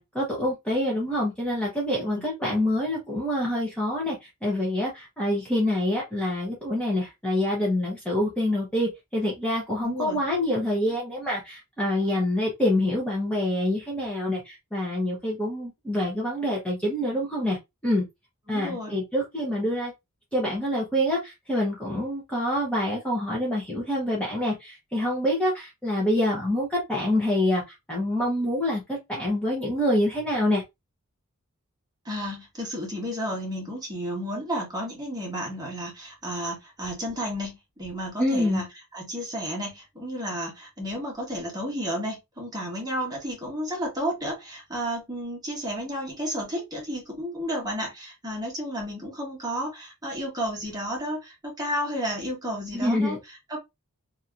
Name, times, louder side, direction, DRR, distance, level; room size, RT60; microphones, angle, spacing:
voice 1, 0.0-17.6 17.8-18.0 18.5-19.9 20.3-27.6 27.9-30.6 38.2-38.6 52.7-53.2, left 1 dB, 5° left, 0.8 m, -26 dB
voice 2, 9.8-10.2 18.5-19.0 32.0-38.7 38.9-53.6, equal, 20° right, 1.2 m, -32 dB
2.8 x 2.7 x 2.4 m
head